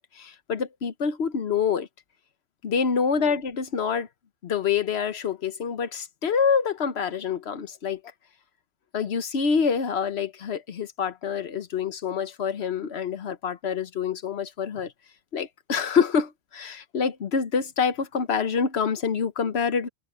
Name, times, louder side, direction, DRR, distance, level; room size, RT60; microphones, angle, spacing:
voice 1, 0.1-1.9 2.6-4.1 4.4-8.0 8.9-14.9 15.3-19.9, left 6 dB, 70° left, 1.3 m, -26 dB
open air
omnidirectional pair, 1.1 m